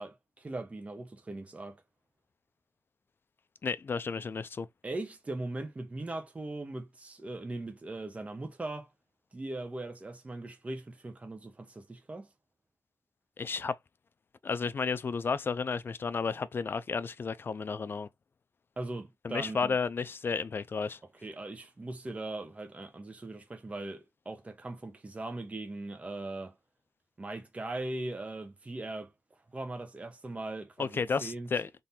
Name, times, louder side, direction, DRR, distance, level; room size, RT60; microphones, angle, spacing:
voice 1, 0.0-1.8 4.8-8.9 9.3-12.3 18.8-19.8 21.2-26.5 27.2-29.1 29.5-31.5, right 2 dB, 25° right, 0.8 m, -39 dB
voice 2, 3.6-4.7 13.4-13.8 14.4-18.1 19.2-21.0 30.8-31.8, left 5 dB, 45° left, 0.4 m, -32 dB
3.7 x 2.7 x 4.1 m
wide cardioid pair, 115°, 5 cm